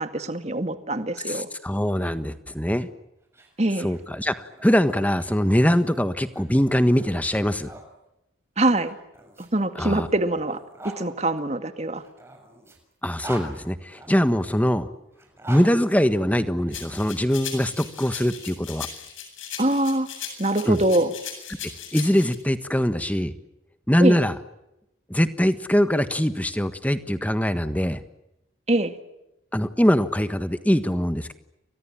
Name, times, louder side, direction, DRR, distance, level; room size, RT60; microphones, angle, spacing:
voice 1, 0.0-1.5 3.6-4.0 8.6-9.0 9.4-10.6 11.0-12.0 19.6-20.1 20.4-21.1 24.0-24.2 28.7-28.9, right 1 dB, 35° right, 9 dB, 2.1 m, -23 dB
voice 2, 1.3-2.9 3.8-7.7 9.8-10.1 13.0-14.9 15.5-18.9 20.6-20.8 21.9-23.3 23.9-24.3 25.1-28.0 29.5-31.3, equal, 10° left, 11 dB, 1.4 m, -22 dB
sound 1, 3.2-7.9 8.8-11.0 11.9-14.3 15.1-16.7, right 1 dB, 15° right, 6.8 m, -44 dB
sound 2, 16.7-22.3, left 8 dB, 85° left, 7.9 m, -38 dB
30.0 x 24.5 x 7.5 m, 0.89 s
head